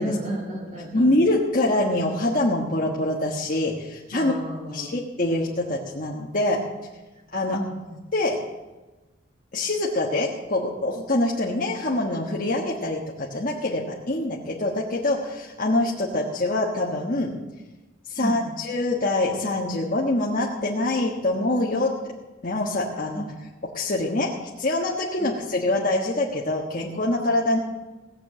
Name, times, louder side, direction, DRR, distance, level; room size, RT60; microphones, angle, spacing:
voice 1, 0.0-1.1 4.1-4.9 7.5-8.0 18.2-18.5 23.1-23.3 25.2-25.3, equal, 40° right, -1 dB, 2.9 m, -32 dB
voice 2, 0.9-4.3 4.7-6.7 7.3-7.6 8.1-8.4 9.5-17.4 18.1-22.0 22.4-23.2 23.7-27.6, left 2 dB, 45° left, -3 dB, 1.4 m, -25 dB
17.5 x 6.8 x 7.6 m, 1.2 s
head